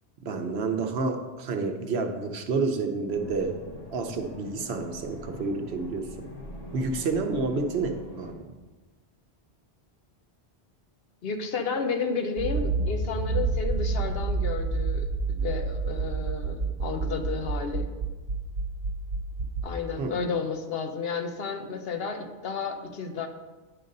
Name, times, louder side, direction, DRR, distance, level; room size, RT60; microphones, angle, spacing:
voice 1, 0.2-3.6 3.9-6.1 6.7-8.4 20.0-20.1, right 4 dB, 70° right, 5 dB, 1.0 m, -29 dB
sound 1, 3.1-8.3, equal, 40° left, 1.1 m, -42 dB
voice 2, 11.2-15.1 15.4-17.9 19.6-23.3, left 5 dB, 65° left, 6 dB, 0.9 m, -32 dB
Accelerating revving vroom, 12.4-19.6, right 4 dB, 45° right, 0.8 m, -29 dB
9.7 x 3.9 x 5.2 m, 1.2 s
omnidirectional pair, 1.1 m